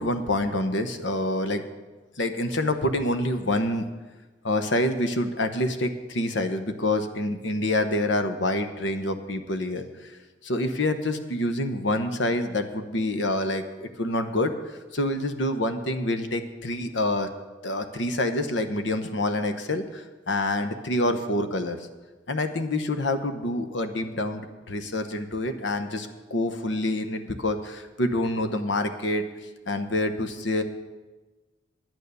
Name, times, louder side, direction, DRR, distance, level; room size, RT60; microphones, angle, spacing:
voice 1, 0.0-1.6 2.2-3.9 4.4-10.1 10.4-14.5 14.9-17.3 17.6-21.8 22.3-29.2 29.7-30.6, left 1 dB, 65° left, 8 dB, 1.0 m, -27 dB
10.5 x 9.2 x 6.8 m, 1.2 s
head